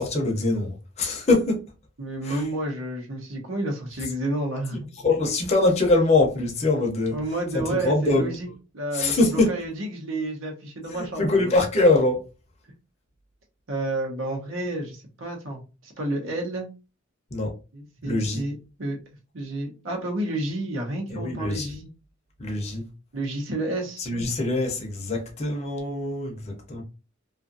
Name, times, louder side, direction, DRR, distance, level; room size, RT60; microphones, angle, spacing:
voice 1, 0.0-1.7 2.2-2.5 5.0-7.2 7.5-8.4 8.9-9.5 10.9-12.2 17.3-17.5 18.0-18.4 21.1-21.7 22.4-22.9 24.0-26.8, left 2 dB, 35° left, 0.6 m, -23 dB
voice 2, 2.0-4.9 7.1-8.5 8.7-11.3 13.7-16.7 17.7-19.0 19.3-21.9 23.1-24.0, right 1 dB, 80° right, 0.9 m, -30 dB
2.6 x 2.4 x 2.5 m
head